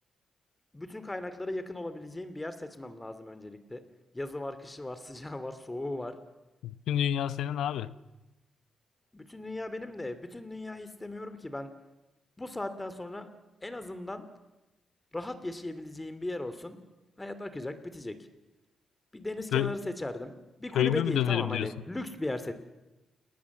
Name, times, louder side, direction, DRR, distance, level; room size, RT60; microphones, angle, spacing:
voice 1, 0.7-3.8 4.1-6.2 9.1-11.7 12.4-13.3 13.6-14.3 15.1-16.8 17.2-18.2 19.1-22.5, left 2 dB, 15° left, 11 dB, 2.8 m, -37 dB
voice 2, 6.6-7.9 19.5-19.7 20.7-21.7, left 11 dB, 90° left, 15 dB, 0.9 m, -28 dB
29.5 x 19.0 x 7.3 m, 1.0 s
cardioid pair, 75°, 0 cm